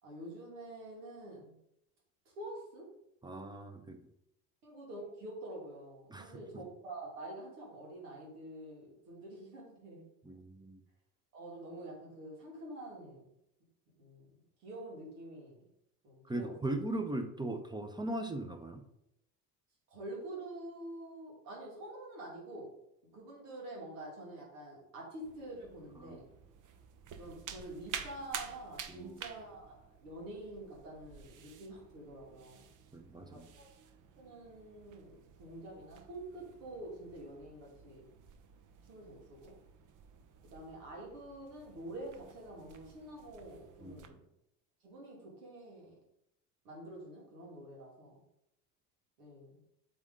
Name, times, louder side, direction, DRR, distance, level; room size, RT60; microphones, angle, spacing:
voice 1, 0.0-1.6 2.3-2.9 4.6-10.0 11.3-13.3 14.0-14.3 14.6-15.6 16.0-16.5 19.9-22.7 23.1-26.3 27.2-32.7 33.2-33.7 34.2-38.1 38.8-39.6 40.5-44.2 44.8-46.0 46.6-48.2 49.2-49.6, right 1 dB, 80° right, -3 dB, 2.4 m, -47 dB
voice 2, 3.2-4.0 6.1-6.4 10.2-10.8 16.3-18.8 26.0-26.2 28.9-29.2 32.9-33.5 43.8-44.2, right 1 dB, 10° right, 6 dB, 0.8 m, -39 dB
sound 1, 25.2-44.1, right 8 dB, 45° right, 0.8 m, -51 dB
7.0 x 3.8 x 3.8 m, 0.80 s
hypercardioid pair, 70°, 45 cm